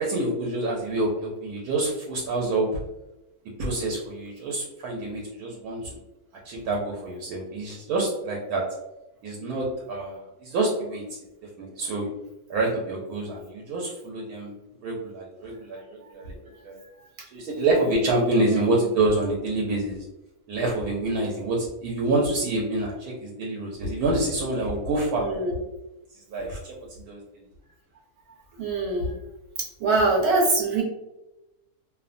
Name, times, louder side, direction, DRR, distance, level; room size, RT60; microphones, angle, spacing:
voice 1, 0.0-2.7 3.6-6.0 6.4-8.6 9.2-11.0 11.6-12.1 12.5-14.5 14.8-16.4 16.6-16.8 17.3-20.0 20.5-25.2 26.3-26.7 27.1-27.2, right 2 dB, 80° right, -2 dB, 1.1 m, -27 dB
voice 2, 18.5-18.8 25.2-25.6 28.3-29.1 29.8-30.8, right 3 dB, 55° right, -4 dB, 1.0 m, -24 dB
2.7 x 2.1 x 2.5 m, 0.95 s
omnidirectional pair, 1.6 m